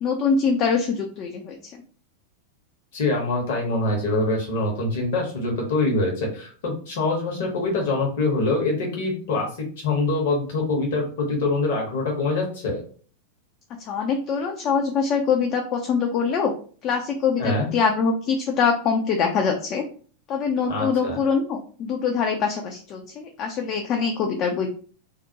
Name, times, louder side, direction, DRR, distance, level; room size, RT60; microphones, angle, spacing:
voice 1, 0.0-1.8 13.9-16.5 16.8-19.8 20.3-24.7, left 5 dB, 35° left, 3 dB, 0.3 m, -24 dB
voice 2, 2.9-9.5 9.8-12.8 17.4-17.7 20.7-21.2, left 2 dB, 55° left, 0 dB, 0.9 m, -24 dB
2.3 x 2.1 x 2.7 m, 0.42 s
figure-of-eight pair, 90°, 0 cm